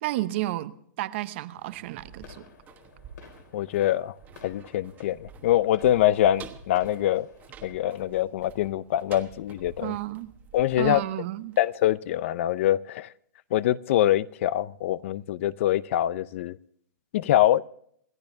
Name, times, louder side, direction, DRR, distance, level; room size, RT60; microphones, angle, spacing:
voice 1, 0.0-2.5 9.8-10.3 10.8-11.6, right 16 dB, 40° right, 0.8 m, -31 dB
sound 1, 1.5-12.3 12.6-12.7, right 6 dB, 15° right, 1.2 m, -50 dB
sound 2, 1.9-7.7, left 7 dB, 65° left, 3.8 m, -53 dB
voice 2, 3.5-4.1 4.4-7.3 7.6-10.0 10.5-11.0 11.6-13.1 13.5-16.6 17.1-17.7, left 13 dB, 40° left, 0.5 m, -24 dB
28.0 x 12.0 x 2.7 m
hypercardioid pair, 160°, 10 cm